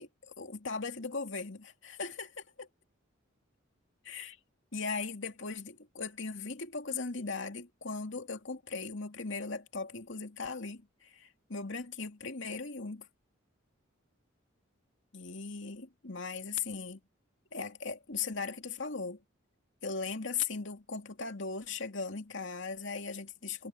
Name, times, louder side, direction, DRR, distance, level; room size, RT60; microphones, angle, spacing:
voice 1, 0.0-2.7 4.0-4.4 4.7-13.1 15.1-17.0 17.5-19.2 19.8-23.7, left 4 dB, 65° left, 2.7 m, -38 dB
head